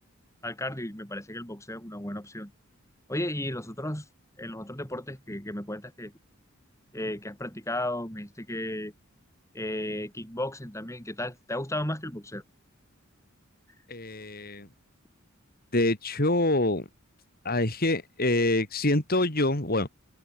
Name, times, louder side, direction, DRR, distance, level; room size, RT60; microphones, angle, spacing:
voice 1, 0.4-2.5 3.1-4.1 4.4-6.1 6.9-8.9 9.5-12.4, left 1 dB, 15° left, 6.4 m, -34 dB
voice 2, 13.9-14.7 15.7-16.9 17.5-19.9, left 2 dB, 45° left, 3.5 m, -25 dB
head